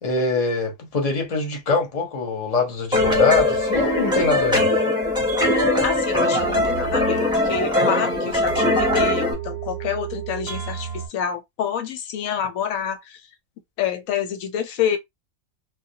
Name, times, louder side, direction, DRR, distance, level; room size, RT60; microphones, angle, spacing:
voice 1, 0.0-4.7, left 3 dB, 35° left, 0.7 m, -23 dB
sound 1, 2.9-9.3, left 1 dB, 5° right, 0.6 m, -21 dB
sound 2, 3.4-11.1, right 9 dB, 60° right, 0.8 m, -35 dB
voice 2, 5.8-13.2 13.8-15.0, left 8 dB, 75° left, 1.0 m, -27 dB
2.3 x 2.1 x 2.8 m
omnidirectional pair, 1.5 m